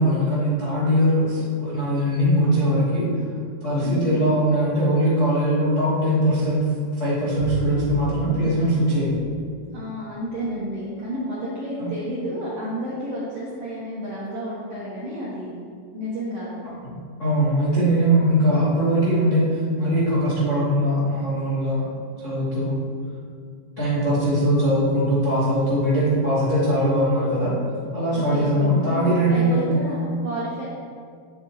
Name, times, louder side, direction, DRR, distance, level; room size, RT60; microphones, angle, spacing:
voice 1, 0.0-3.1 3.6-6.6 6.9-9.2 11.8-11.9 16.9-21.9 22.2-22.8 23.8-27.5 27.9-29.6, equal, 60° left, -10 dB, 0.7 m, -21 dB
voice 2, 3.8-4.2 9.7-15.6 15.9-16.6 28.1-30.6, equal, 65° right, -7 dB, 1.5 m, -31 dB
Bowed string instrument, 7.4-10.5, left 1 dB, 85° left, 3.3 m, -35 dB
9.5 x 7.5 x 3.1 m, 2.1 s
omnidirectional pair, 4.5 m